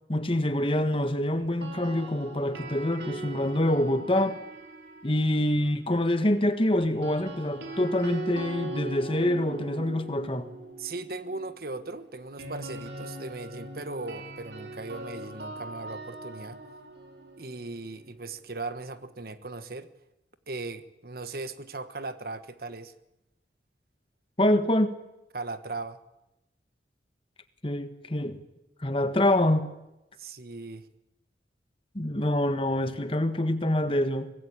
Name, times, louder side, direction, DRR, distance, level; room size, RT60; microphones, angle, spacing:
voice 1, 0.1-4.4 5.0-10.5 24.4-25.0 27.6-28.4 28.8-29.7 31.9-34.3, left 1 dB, 30° left, 1.5 m, -26 dB
sound 1, 1.4-5.6 6.8-18.7, right 2 dB, 75° right, 4.1 m, -41 dB
voice 2, 10.8-16.6 17.4-19.9 20.5-22.9 25.3-26.0 30.2-30.9, right 3 dB, 55° right, 1.2 m, -38 dB
24.0 x 18.5 x 8.7 m
head